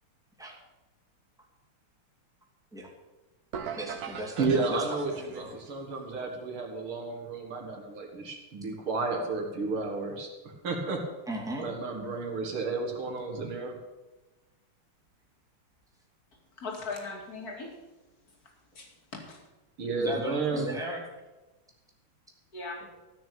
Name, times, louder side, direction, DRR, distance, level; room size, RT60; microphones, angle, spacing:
sound 1, 3.5-5.6, right 7 dB, 55° right, 1.2 m, -40 dB
voice 1, 3.8-5.5 11.3-11.6 20.0-21.0, right 1 dB, ahead, -2 dB, 2.4 m, -36 dB
voice 2, 4.4-11.0 11.6-13.8 19.8-20.7, right 3 dB, 75° right, 2 dB, 2.8 m, -32 dB
voice 3, 16.6-17.7 18.7-18.9 19.1-19.4 22.5-23.0, left 3 dB, 45° left, 1 dB, 2.9 m, -38 dB
14.5 x 6.3 x 8.8 m, 1.1 s
omnidirectional pair, 2.4 m